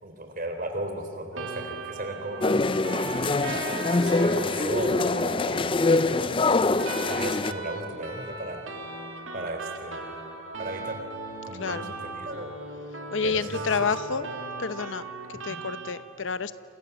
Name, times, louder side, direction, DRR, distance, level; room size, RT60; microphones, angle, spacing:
voice 1, 0.0-3.4 3.9-6.4 7.1-8.6 9.3-10.2 10.6-11.0 11.4-12.5 13.2-13.9 15.5-15.6, right 1 dB, 45° right, 5 dB, 3.7 m, -36 dB
sound 1, 1.3-15.9, right 3 dB, 75° right, 2.9 m, -38 dB
sound 2, 2.4-7.5, left 3 dB, 25° left, 0.5 m, -24 dB
voice 2, 11.6-11.9 13.1-14.3 14.6-15.0 15.3-16.6, left 5 dB, 65° left, 13 dB, 0.8 m, -29 dB
28.5 x 27.0 x 7.1 m, 2.9 s
head